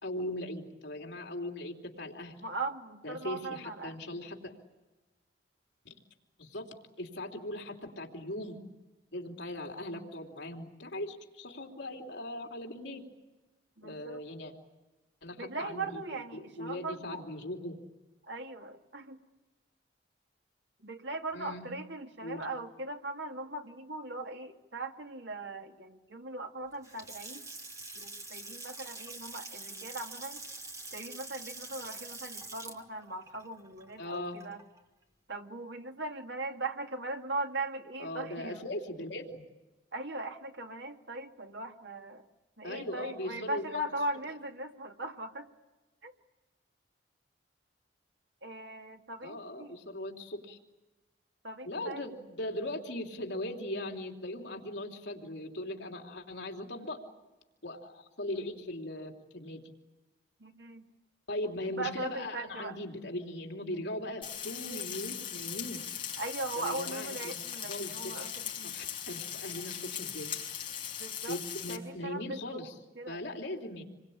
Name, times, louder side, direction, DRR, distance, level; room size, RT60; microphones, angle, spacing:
voice 1, 0.0-2.4 3.0-4.5 5.8-5.9 6.4-6.7 7.0-8.6 9.1-13.0 13.8-14.5 15.2-16.0 16.3-17.8 21.3-21.7 22.2-22.4 34.0-34.4 38.0-39.4 42.6-43.8 49.2-50.6 51.6-57.0 57.6-59.6 61.3-65.8 66.6-68.3 68.7-70.3 71.3-72.7 73.1-73.8, left 1 dB, 75° left, 2 dB, 3.2 m, -39 dB
voice 2, 2.4-4.2 13.8-14.2 15.4-17.2 18.2-19.2 20.8-27.5 27.9-30.4 30.9-34.6 35.3-38.7 39.9-42.3 42.6-45.5 46.0-46.1 48.4-49.8 51.4-52.1 60.4-60.8 61.7-62.8 66.2-68.8 71.0-71.4 71.7-72.6 73.0-73.2, right 2 dB, 75° right, 3 dB, 2.4 m, -39 dB
Water tap faucet / Sink (filling or washing) / Splash splatter, 26.7-34.8, right 2 dB, 15° right, 2.1 m, -45 dB
Frying (food), 64.2-71.8, left 9 dB, 30° left, 5.4 m, -39 dB
27.5 x 22.5 x 8.6 m, 1.1 s
head